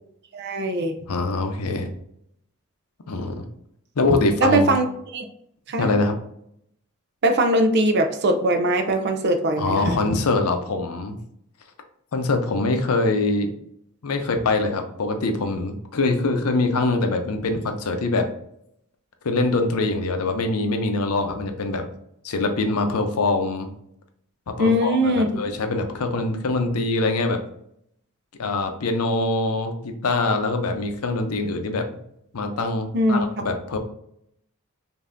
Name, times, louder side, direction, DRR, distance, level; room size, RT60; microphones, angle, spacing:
voice 1, 0.3-1.0 4.4-4.8 5.1-5.2 5.7-5.9 7.2-10.0 24.6-25.3 32.9-33.2, right 1 dB, 50° right, 7 dB, 0.5 m, -20 dB
voice 2, 1.1-1.9 3.1-3.4 4.0-4.7 5.8-6.1 9.6-11.2 12.1-13.5 14.0-18.3 19.2-21.9 22.2-23.7 24.5-27.4 28.4-31.9 32.3-33.8, left 2 dB, 90° left, 6 dB, 0.6 m, -23 dB
5.3 x 2.7 x 2.6 m, 0.73 s
head